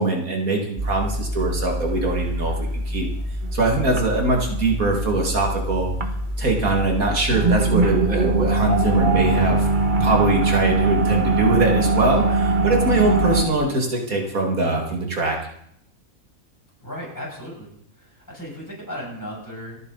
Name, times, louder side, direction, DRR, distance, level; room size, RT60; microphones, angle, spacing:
voice 1, 0.0-3.1 3.5-5.9 6.4-9.7 10.0-15.4, right 2 dB, 80° right, 1 dB, 2.7 m, -22 dB
sound 1, 0.8-13.4, right 2 dB, 35° right, 1.6 m, -22 dB
voice 2, 16.8-17.7 18.0-19.8, equal, 10° left, -5 dB, 7.6 m, -35 dB
29.0 x 9.8 x 4.1 m, 0.70 s
omnidirectional pair, 1.5 m